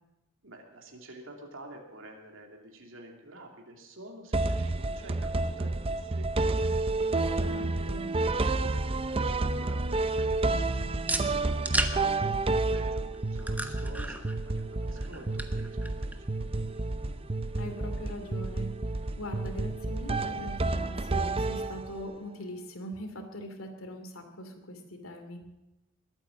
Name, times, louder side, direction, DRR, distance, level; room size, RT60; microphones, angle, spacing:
voice 1, 0.4-6.9 7.4-10.9 11.5-16.6, right 1 dB, 70° right, 1 dB, 2.8 m, -49 dB
sound 1, 4.3-22.1, right 2 dB, 25° right, 0.6 m, -30 dB
voice 2, 7.4-8.1 17.5-18.7 19.2-25.4, equal, 85° left, 6 dB, 2.6 m, -41 dB
sound 2, 7.8-22.0, right 1 dB, 10° right, 1.0 m, -40 dB
21.0 x 9.1 x 7.3 m, 0.99 s
head